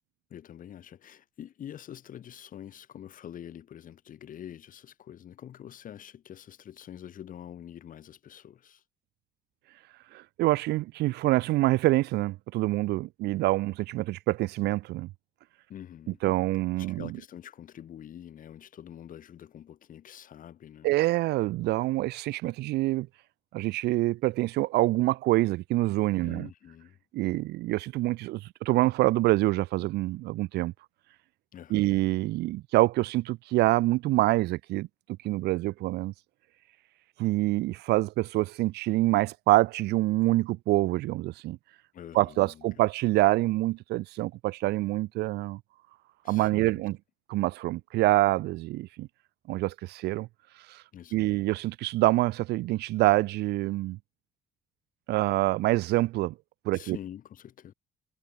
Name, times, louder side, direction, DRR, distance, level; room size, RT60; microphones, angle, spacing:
voice 1, 0.3-8.8 15.7-16.2 16.8-20.9 26.2-27.0 31.5-31.9 41.9-42.7 46.2-46.8 50.9-51.4 56.7-57.7, left 10 dB, 55° left, 2.6 m, -46 dB
voice 2, 10.1-15.1 16.2-17.1 20.8-23.1 23.5-26.5 27.1-30.7 31.7-34.9 35.2-36.1 37.2-41.6 42.2-45.6 46.3-47.0 47.3-49.1 49.5-50.3 50.7-50.8 51.1-54.0 55.1-56.3 56.6-57.0, right 18 dB, 75° right, 0.6 m, -26 dB
cardioid pair, 110°, 17 cm